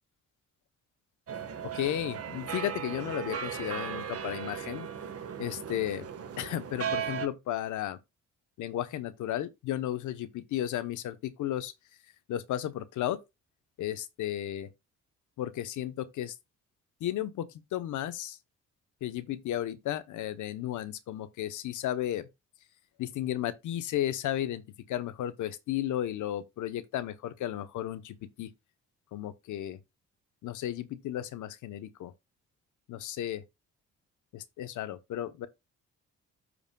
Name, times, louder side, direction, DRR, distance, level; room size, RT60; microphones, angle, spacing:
sound 1, 1.3-7.3, right 8 dB, 50° right, 1.5 m, -37 dB
voice 1, 1.7-4.9 5.4-6.1 6.4-8.0 8.6-11.7 12.3-13.2 13.8-14.7 15.4-16.3 17.0-18.4 19.0-22.3 23.0-28.5 29.1-29.8 30.4-32.1 32.9-33.4 34.3-35.5, left 12 dB, 80° left, 0.9 m, -34 dB
13.5 x 5.1 x 2.3 m
cardioid pair, 90°, 30 cm